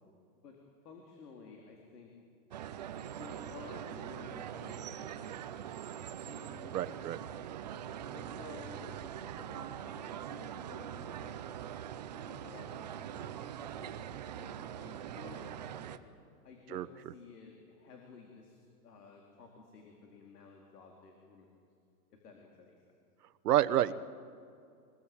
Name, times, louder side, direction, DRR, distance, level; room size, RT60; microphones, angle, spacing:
voice 1, 0.8-2.1 3.2-5.4 6.2-6.8 8.1-11.4 12.2-13.9 14.4-16.0 16.4-21.5 22.1-22.8, left 4 dB, 80° left, 1 dB, 4.2 m, -53 dB
sound 1, 2.5-16.0, right 10 dB, 30° right, 0.6 m, -43 dB
voice 2, 6.7-7.2 16.7-16.9 23.4-23.9, right 12 dB, 80° right, 13 dB, 1.2 m, -28 dB
25.0 x 21.0 x 8.9 m, 2.4 s
supercardioid pair, 175°, 46 cm